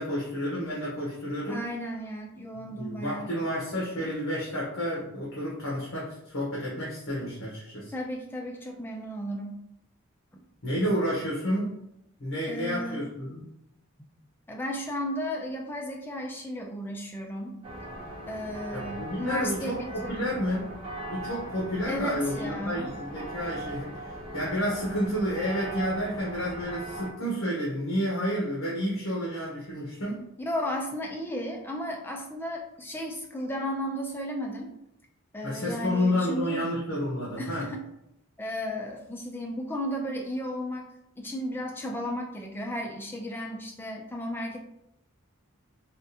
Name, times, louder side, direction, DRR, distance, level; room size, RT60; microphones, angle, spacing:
voice 1, 0.0-1.6 2.7-7.9 10.6-11.8 12.2-13.4 18.7-20.7 21.1-30.2 35.4-37.6, equal, 65° left, -6 dB, 0.9 m, -30 dB
voice 2, 1.5-3.3 7.9-9.5 12.5-13.1 14.5-17.6 18.3-20.2 21.9-22.9 30.4-34.7 35.3-36.7 37.4-37.8 38.4-40.8 41.2-44.6, equal, 10° left, 1 dB, 0.3 m, -34 dB
sound 1, 17.6-27.1, right 1 dB, 25° right, 0.7 m, -39 dB
3.5 x 2.4 x 2.7 m, 0.81 s
head